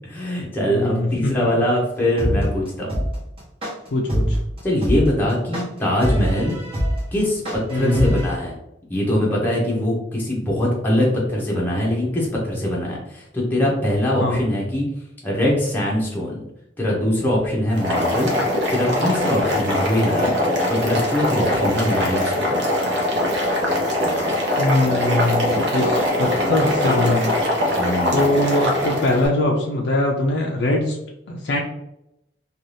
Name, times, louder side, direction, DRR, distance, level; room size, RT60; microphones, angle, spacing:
voice 1, 0.0-3.0 4.6-6.6 7.1-8.5 8.9-14.9 15.2-16.4 16.8-18.3 18.7-22.6 27.8-28.2, left 1 dB, 10° left, -4 dB, 0.7 m, -22 dB
voice 2, 0.7-1.3 3.9-4.4 7.7-8.1 14.2-14.4 24.6-27.4 28.1-31.0 31.3-31.6, left 1 dB, 60° left, -2 dB, 0.4 m, -22 dB
sound 1, 2.2-8.3, equal, 30° right, 0.9 m, -23 dB
Boiling, 17.7-29.3, left 1 dB, 65° right, 0.7 m, -22 dB
2.6 x 2.3 x 3.2 m, 0.83 s
head